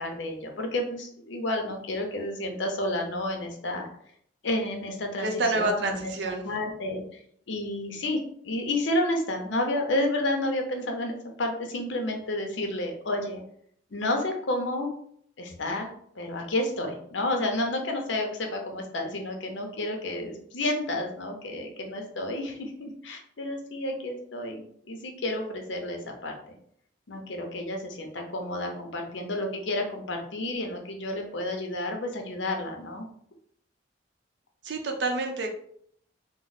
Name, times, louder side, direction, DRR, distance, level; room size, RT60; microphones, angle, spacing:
voice 1, 0.0-3.9 4.4-6.1 6.4-7.2 7.5-13.4 13.9-14.9 15.4-26.3 27.1-33.1, left 1 dB, 75° left, 3 dB, 0.7 m, -30 dB
voice 2, 5.2-6.5 34.6-35.5, right 2 dB, 65° right, 3 dB, 0.6 m, -28 dB
3.0 x 2.0 x 3.9 m, 0.65 s
head